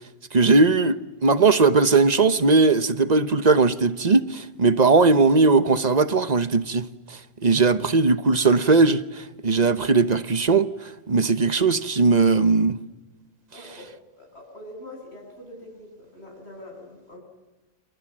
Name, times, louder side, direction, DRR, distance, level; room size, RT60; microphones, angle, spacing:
voice 1, 0.3-6.9 7.4-10.7 11.1-12.8, right 3 dB, 40° right, 1.1 m, -19 dB
voice 2, 13.5-13.9 14.2-17.2, left 1 dB, 85° left, 8.4 m, -43 dB
28.0 x 26.5 x 7.5 m
omnidirectional pair, 1.1 m